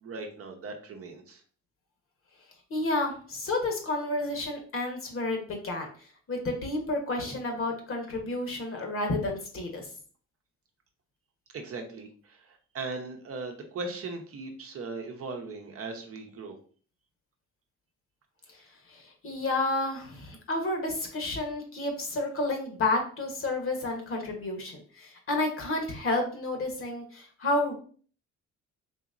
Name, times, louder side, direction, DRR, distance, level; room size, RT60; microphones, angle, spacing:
voice 1, 0.0-1.4 11.5-16.6, right 3 dB, 50° right, 4 dB, 0.8 m, -38 dB
voice 2, 2.7-5.9 6.3-9.9 18.9-27.7, left 2 dB, 45° left, 3 dB, 1.1 m, -30 dB
3.9 x 2.9 x 2.5 m, 0.43 s
cardioid pair, 90°, 30 cm